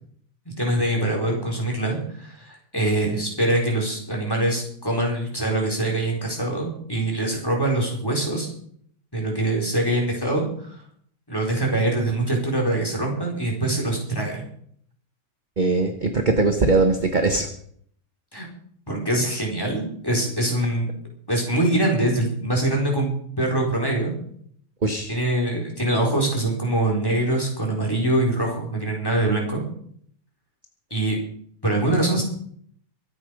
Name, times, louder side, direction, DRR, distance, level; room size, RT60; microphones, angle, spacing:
voice 1, 0.4-8.5 9.1-10.7 11.3-14.5 18.3-18.5 18.9-20.9 21.3-24.1 25.1-29.6 30.9-31.2 31.6-32.2, right 1 dB, 10° left, -1 dB, 4.7 m, -24 dB
voice 2, 15.6-17.5 24.8-25.1, right 3 dB, 30° right, 6 dB, 1.2 m, -20 dB
23.5 x 8.7 x 5.4 m, 0.63 s
omnidirectional pair, 1.9 m